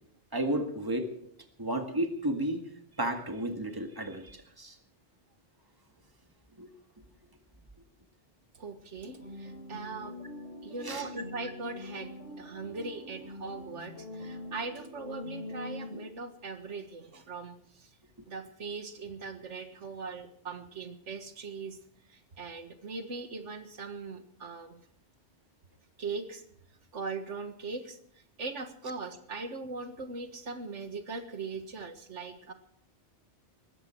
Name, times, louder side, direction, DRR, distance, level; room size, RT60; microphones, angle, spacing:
voice 1, 0.3-1.3 1.6-2.6 3.0-4.8 6.6-6.7 10.8-11.1 15.9-16.0, right 1 dB, 20° right, 5 dB, 1.9 m, -33 dB
voice 2, 8.5-10.2 10.6-17.9 18.3-21.8 22.1-24.8 26.0-26.4 26.9-32.5, right 4 dB, 85° right, 8 dB, 1.8 m, -40 dB
sound 1, 9.0-16.3, left 1 dB, 85° left, 5.0 m, -44 dB
20.0 x 15.5 x 4.6 m, 0.66 s
omnidirectional pair, 1.2 m